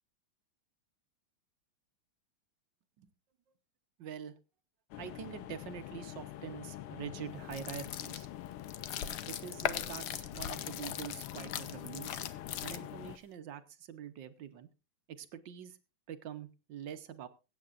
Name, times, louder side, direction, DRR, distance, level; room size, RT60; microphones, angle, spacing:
voice 1, 4.0-4.4 5.0-8.3 9.2-12.3 12.6-14.7 15.1-15.8 16.1-17.3, right 9 dB, 65° right, 10 dB, 1.5 m, -45 dB
sound 1, 4.9-13.2, left 13 dB, 90° left, 1.6 m, -45 dB
sound 2, 7.4-13.1, left 10 dB, 65° left, 1.1 m, -40 dB
22.5 x 8.8 x 2.5 m, 0.30 s
omnidirectional pair, 2.3 m